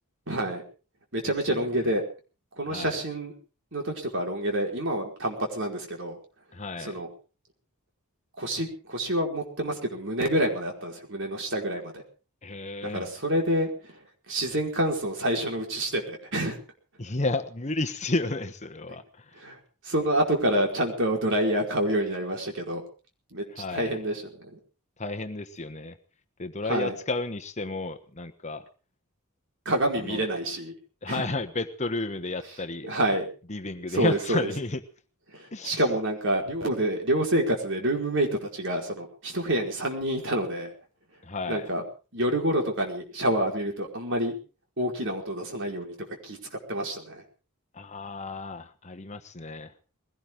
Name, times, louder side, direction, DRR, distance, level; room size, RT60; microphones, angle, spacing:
voice 1, 0.3-0.6 1.1-2.0 2.6-3.3 3.7-6.2 6.8-7.1 8.4-12.0 12.8-14.0 14.3-16.6 19.4-19.6 19.8-22.8 23.3-24.6 26.7-26.9 29.6-30.7 31.1-31.3 32.8-33.3 33.9-34.5 35.3-40.7 41.5-41.8 42.1-44.3 44.8-45.9 46.2-47.2, right 1 dB, 55° right, 1 dB, 4.7 m, -28 dB
voice 2, 1.2-1.6 2.7-3.0 6.5-7.0 12.4-13.1 17.0-19.3 23.5-24.0 25.0-26.0 26.4-28.6 30.0-30.3 31.0-32.9 33.5-34.8 35.5-35.8 41.2-41.7 47.7-49.7, left 2 dB, 30° left, 8 dB, 1.2 m, -32 dB
21.5 x 17.5 x 3.8 m, 0.36 s
head